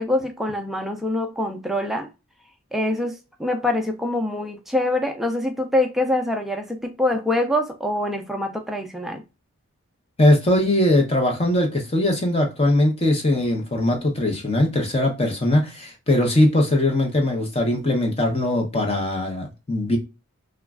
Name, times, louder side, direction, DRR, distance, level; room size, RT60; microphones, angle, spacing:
voice 1, 0.0-2.1 2.7-9.2, left 1 dB, ahead, 0.4 m, -24 dB
voice 2, 10.2-20.0, left 1 dB, 25° left, 0.7 m, -20 dB
3.0 x 2.3 x 2.2 m
head